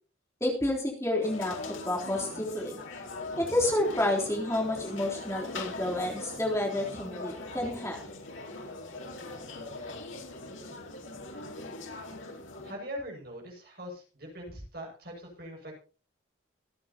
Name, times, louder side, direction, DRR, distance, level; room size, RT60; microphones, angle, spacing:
voice 1, 0.4-2.8 3.4-8.0, left 1 dB, 15° left, -2 dB, 3.4 m, -30 dB
sound 1, 1.2-12.7, left 2 dB, 90° left, 4.1 m, -41 dB
voice 2, 12.6-15.7, equal, 50° right, 0 dB, 6.6 m, -42 dB
25.0 x 9.3 x 2.9 m, 0.36 s
head